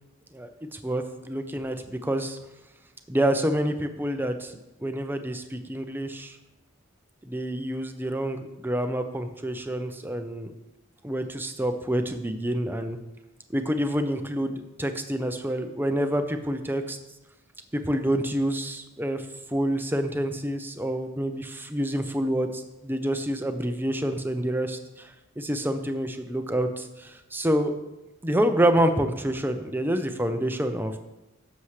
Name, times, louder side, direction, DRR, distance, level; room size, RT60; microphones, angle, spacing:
voice 1, 0.3-2.4 3.1-4.5 4.8-6.3 7.3-10.5 11.0-13.0 13.5-17.0 17.7-19.2 19.5-24.8 25.4-27.8 28.2-30.9, right 1 dB, 10° right, 7 dB, 0.7 m, -27 dB
15.5 x 7.1 x 3.3 m, 0.95 s
head